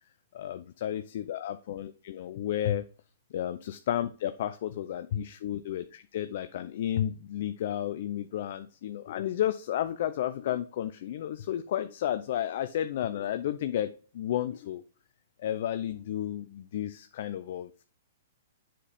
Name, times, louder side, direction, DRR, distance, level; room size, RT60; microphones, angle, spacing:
voice 1, 0.3-2.8 3.3-14.8 15.4-17.8, left 11 dB, 60° left, 10 dB, 0.4 m, -32 dB
7.4 x 4.3 x 3.4 m, 0.38 s
hypercardioid pair, 135°, 0 cm